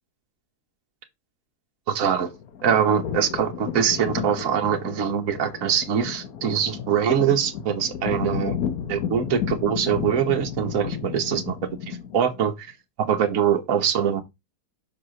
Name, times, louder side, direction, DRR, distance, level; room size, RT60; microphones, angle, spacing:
voice 1, 1.9-2.3 2.6-8.6 8.9-11.6 11.9-12.7 13.0-14.2, right 8 dB, 60° right, 1.5 m, -23 dB
sound 1, 2.0-12.4, left 8 dB, 65° left, 1.5 m, -33 dB
5.9 x 4.3 x 6.3 m
omnidirectional pair, 1.7 m